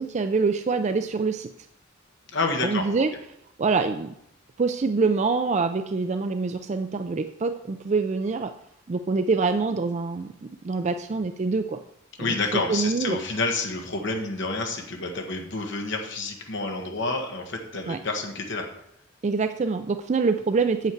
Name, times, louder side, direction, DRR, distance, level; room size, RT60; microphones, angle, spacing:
voice 1, 0.0-1.5 2.6-3.1 3.6-4.1 4.6-8.5 8.9-10.3 10.6-11.8 12.2-13.2 17.9-18.0 19.2-20.9, right 4 dB, 35° right, 8 dB, 0.4 m, -25 dB
voice 2, 2.3-2.8 12.2-18.6, left 3 dB, 60° left, 2 dB, 1.4 m, -29 dB
8.4 x 8.0 x 4.6 m, 0.76 s
head